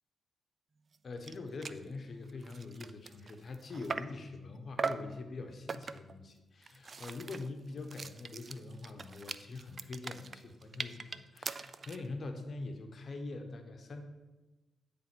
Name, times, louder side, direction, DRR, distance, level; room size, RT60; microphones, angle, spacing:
sound 1, 0.9-1.0 1.2-1.4 1.6-1.8 2.3-4.2 4.8-5.1 5.7-6.2 6.6-12.1, right 4 dB, 45° right, 0.3 m, -41 dB
voice 1, 1.0-14.0, left 3 dB, 50° left, 5 dB, 0.9 m, -44 dB
9.1 x 3.4 x 6.1 m, 1.1 s
cardioid pair, 70°, 0 cm